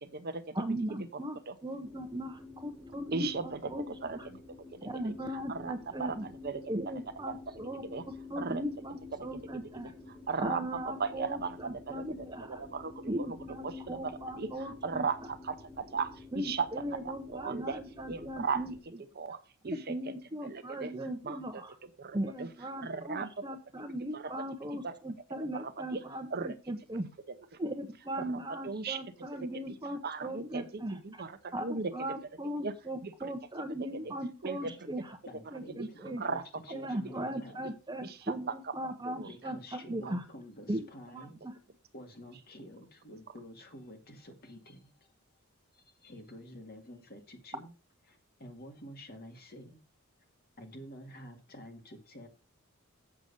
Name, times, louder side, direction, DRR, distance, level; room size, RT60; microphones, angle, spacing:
voice 1, 0.0-0.6 1.5-1.6 3.1-4.4 4.7-5.1 5.5-5.7 6.0-6.2 6.4-6.6 7.3-7.4 7.8-8.0 8.4-8.6 9.8-9.9 10.3-13.4 13.6-16.7 17.0-17.8 18.1-18.6 19.2-19.4 19.6-20.0 20.4-20.9 21.2-21.6 22.0-22.5 22.8-23.3 24.1-24.3 24.8-24.9 25.5-26.0 26.3-26.5 28.3-29.0 29.4-29.5 30.0-31.9 32.6-32.7 33.0-33.3 34.4-34.7 36.2-36.4 38.0-39.3 40.0-40.1, right 5 dB, 45° right, 0.7 m, -37 dB
voice 2, 0.5-3.9 4.1-4.3 4.8-6.3 6.7-7.8 8.3-9.9 10.4-12.6 13.1-15.0 16.3-18.7 19.6-21.7 22.1-27.1 27.6-31.2 31.5-35.2 35.5-36.2 36.7-40.2 40.7-40.8 41.1-41.5, right 1 dB, 20° right, 0.9 m, -38 dB
sound 1, 1.8-18.8, left 3 dB, 5° left, 3.9 m, -49 dB
voice 3, 35.3-37.6 39.2-41.4 41.9-44.9 45.7-47.7 48.1-49.8 50.6-52.3, equal, 45° left, 2.0 m, -49 dB
7.7 x 6.4 x 5.4 m
head